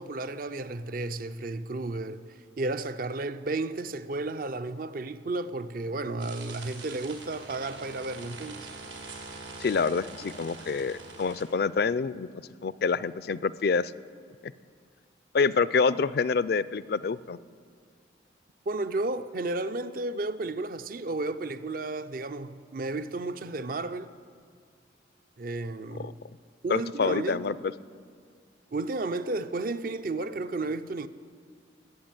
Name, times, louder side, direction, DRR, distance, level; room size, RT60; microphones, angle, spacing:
voice 1, 0.0-8.7 18.7-24.1 25.4-26.2 26.6-27.6 28.7-31.1, right 2 dB, 50° right, 0.5 m, -33 dB
sound 1, 6.2-11.4, right 3 dB, 80° right, 2.8 m, -44 dB
voice 2, 9.6-12.3 12.6-13.9 14.4-14.5 15.3-17.4 26.0-26.1 26.7-27.5, left 5 dB, 55° left, 0.4 m, -27 dB
19.5 x 8.3 x 8.9 m
head